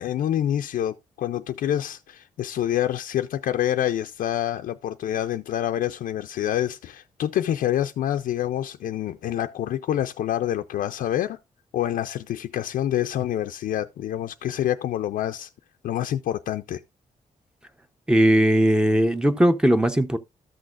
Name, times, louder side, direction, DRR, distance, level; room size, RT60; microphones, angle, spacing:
voice 1, 0.0-11.4 11.7-15.5 15.8-16.8, left 11 dB, 85° left, 0.4 m, -27 dB
voice 2, 18.1-20.2, right 1 dB, 5° right, 0.7 m, -19 dB
13.5 x 6.2 x 2.4 m
wide cardioid pair, 135°, 14 cm